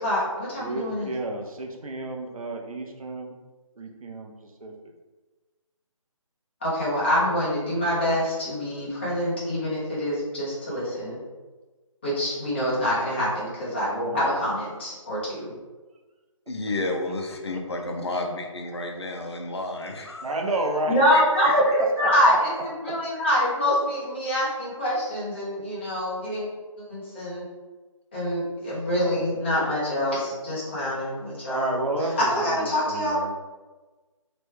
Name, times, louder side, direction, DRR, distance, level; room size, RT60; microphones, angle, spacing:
voice 1, 0.0-1.1 6.6-11.2 12.0-15.5 20.9-26.5 26.9-27.4 28.1-31.7 32.2-33.3, equal, 20° left, -9 dB, 0.7 m, -25 dB
voice 2, 0.6-3.4 3.8-4.3 4.6-4.7 13.9-14.2 20.2-21.0 21.8-22.4 31.5-33.3, right 2 dB, 90° right, 2 dB, 0.6 m, -31 dB
voice 3, 16.5-20.3 21.1-21.8, left 2 dB, 50° left, 2 dB, 0.5 m, -31 dB
3.0 x 2.2 x 3.1 m, 1.3 s
hypercardioid pair, 175°, 17 cm